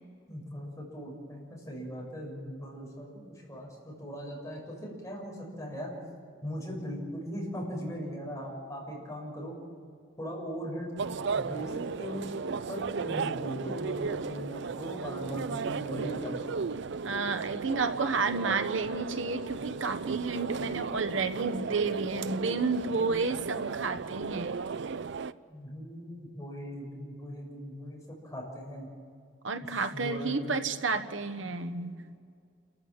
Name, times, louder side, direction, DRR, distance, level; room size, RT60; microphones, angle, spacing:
voice 1, 0.3-5.9 6.4-9.6 10.2-11.0 11.3-12.3 12.7-16.4 25.5-28.9 29.9-30.6, equal, 15° left, -2 dB, 6.8 m, -39 dB
sound 1, 11.0-25.3, right 5 dB, 65° right, 0.5 m, -35 dB
voice 2, 17.0-24.5 29.4-32.1, right 4 dB, 85° right, 9 dB, 1.2 m, -31 dB
29.0 x 14.5 x 7.5 m, 2.3 s
head